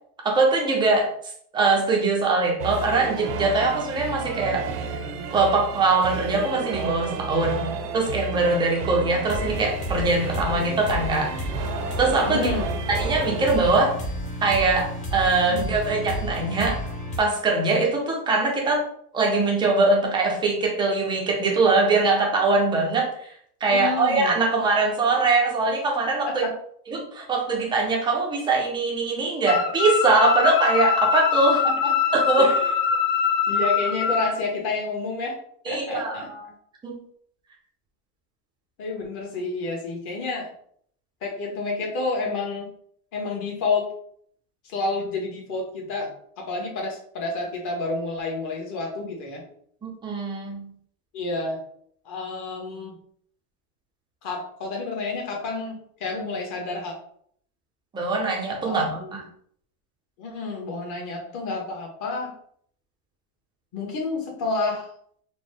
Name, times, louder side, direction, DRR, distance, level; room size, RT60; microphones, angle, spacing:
voice 1, 0.2-1.1 1.5-4.7 5.3-7.7 7.9-11.5 12.0-12.5 12.9-14.0 14.4-16.9 17.2-18.8 19.1-23.3 23.6-26.4 26.9-31.6 32.1-32.5 35.7-36.4 36.8-37.0 49.8-50.7 57.9-59.2, right 3 dB, 10° right, -1 dB, 0.4 m, -22 dB
sound 1, 2.6-13.8, right 4 dB, 75° right, 0.7 m, -32 dB
sound 2, 9.3-17.2, left 1 dB, 15° left, 0.9 m, -32 dB
voice 2, 12.3-12.7 15.5-15.7 23.7-24.3 26.2-26.5 31.5-31.9 32.4-32.6 33.5-35.4 35.7-36.3 38.8-40.5 41.2-42.7 43.1-43.9 44.6-49.4 51.1-51.6 52.0-53.0 54.2-56.9 58.6-59.1 60.2-62.3 63.7-64.9, left 3 dB, 35° left, 0 dB, 1.3 m, -29 dB
sound 3, 29.5-34.3, left 6 dB, 60° left, 0.8 m, -23 dB
4.1 x 2.1 x 3.3 m, 0.63 s
supercardioid pair, 140°, 48 cm